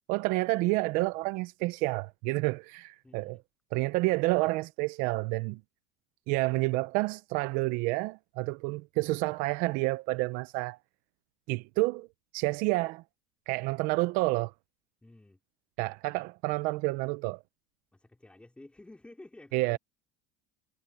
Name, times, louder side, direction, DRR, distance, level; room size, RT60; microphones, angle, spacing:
voice 1, 0.1-3.4 3.7-5.6 6.3-10.8 11.5-12.1 12.3-13.0 13.5-14.5 15.8-17.4 19.5-19.8, right 22 dB, 70° right, 0.7 m, -29 dB
voice 2, 3.0-3.4 15.0-15.4 17.9-19.8, left 2 dB, 10° left, 4.0 m, -52 dB
supercardioid pair, 115°, 14 cm